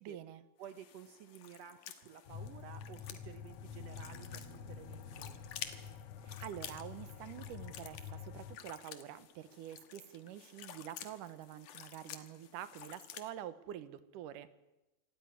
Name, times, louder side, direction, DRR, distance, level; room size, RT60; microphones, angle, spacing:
voice 1, 0.0-0.4 6.2-14.6, right 11 dB, 90° right, 14 dB, 2.6 m, -47 dB
sound 1, 0.6-13.3, left 10 dB, 85° left, 2.9 m, -51 dB
voice 2, 0.6-5.5, right 8 dB, 65° right, 9 dB, 1.9 m, -53 dB
sound 2, 2.3-8.6, left 7 dB, 65° left, 1.5 m, -48 dB
sound 3, 2.7-6.8 9.2-9.3, right 2 dB, 50° right, 3.6 m, -59 dB
26.5 x 13.5 x 9.5 m, 1.0 s
omnidirectional pair, 3.6 m